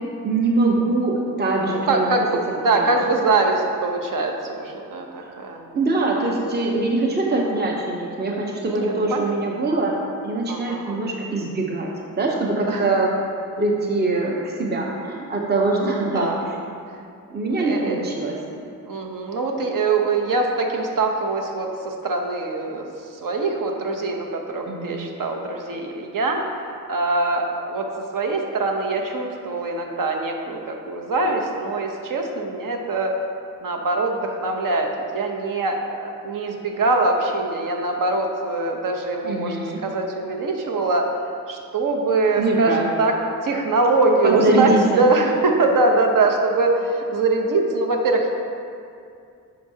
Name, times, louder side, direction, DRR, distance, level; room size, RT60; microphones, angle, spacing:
voice 1, 0.2-2.1 2.7-2.9 5.2-5.3 5.7-10.0 10.2-11.9 12.2-13.1 13.6-16.3 17.3-18.4 24.7-25.1 39.2-39.8 42.4-43.1 44.2-45.0, right 2 dB, 30° right, -1 dB, 0.7 m, -23 dB
voice 2, 1.9-5.1 5.4-5.6 8.7-9.3 10.5-11.1 12.7-12.8 15.8-16.5 17.5-18.1 18.9-22.9 23.2-26.6 26.9-27.9 28.1-33.1 33.6-39.6 39.8-41.0 41.5-43.1 43.4-44.7 45.0-48.3, right 3 dB, 70° right, 2 dB, 0.9 m, -23 dB
9.4 x 6.1 x 2.8 m, 2.5 s
wide cardioid pair, 115°, 34 cm